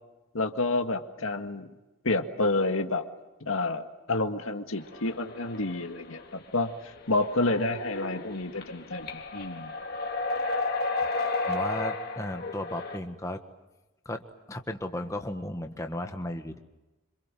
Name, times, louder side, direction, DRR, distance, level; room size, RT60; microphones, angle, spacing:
voice 1, 0.3-1.7 2.0-3.1 3.4-6.7 7.1-9.7, left 2 dB, 80° left, 6 dB, 1.9 m, -29 dB
sound 1, 4.8-6.5 6.9-13.0, left 3 dB, 45° left, 2.6 m, -33 dB
voice 2, 11.5-13.4 14.0-14.2 14.5-16.6, left 1 dB, 15° left, 5 dB, 1.5 m, -35 dB
27.0 x 26.5 x 7.6 m, 1.0 s
head